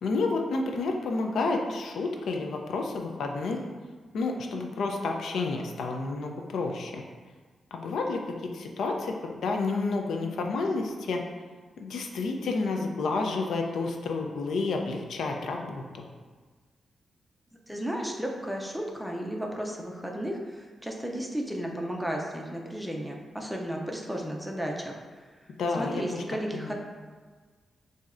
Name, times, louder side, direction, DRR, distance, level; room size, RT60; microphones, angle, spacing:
voice 1, 0.0-3.6 4.1-7.0 7.7-11.2 11.8-16.1 25.6-26.2 26.5-26.7, left 3 dB, 80° left, 2 dB, 0.5 m, -30 dB
voice 2, 17.7-25.0 25.7-26.7, equal, 5° right, 0 dB, 0.4 m, -34 dB
7.1 x 2.7 x 2.5 m, 1.4 s
wide cardioid pair, 160°, 0 cm